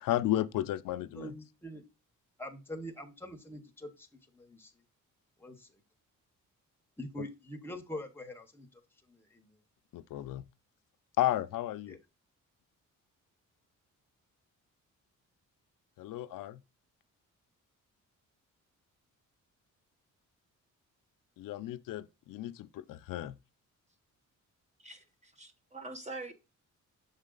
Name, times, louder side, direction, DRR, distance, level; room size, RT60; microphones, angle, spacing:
voice 1, 0.0-1.3 7.2-7.3 9.9-10.4 11.2-12.0 16.0-16.6 21.4-23.4, left 13 dB, 85° left, 0.5 m, -33 dB
voice 2, 1.1-1.8 2.4-4.1 4.3-4.7 5.4-5.8 7.0-8.8 9.1-9.6 11.9-12.0, left 1 dB, 5° left, 0.9 m, -44 dB
voice 3, 24.8-26.3, right 2 dB, 20° right, 0.8 m, -44 dB
7.3 x 3.8 x 3.8 m
wide cardioid pair, 175°, 32 cm